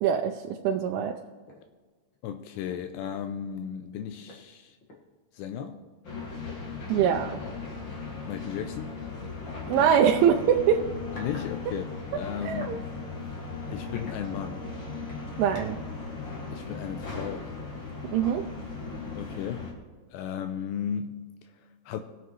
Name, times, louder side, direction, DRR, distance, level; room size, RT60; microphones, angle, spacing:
voice 1, 0.0-1.1 6.9-7.4 9.7-10.8 12.4-12.8 15.4-15.8 18.1-18.4, right 8 dB, 90° right, 2 dB, 3.1 m, -23 dB
sound 1, 1.5-1.7 2.1-2.2 2.7-2.9 3.9-4.0 4.3-5.7 6.5-6.6 7.4-7.5 8.5-8.7 9.9-10.1 10.8-11.5 11.8-12.8 13.2-13.4 13.9-14.7 15.1-15.9, left 1 dB, 65° left, 1.2 m, -48 dB
voice 2, 2.2-4.8 5.3-5.8 8.2-9.0 11.1-12.9 13.7-14.7 16.5-17.5 19.1-19.7 20.1-22.0, left 8 dB, 80° left, 7 dB, 2.6 m, -35 dB
sound 2, 6.0-19.7, left 4 dB, 40° left, 1.8 m, -37 dB
22.0 x 7.6 x 3.2 m, 1.4 s
omnidirectional pair, 5.3 m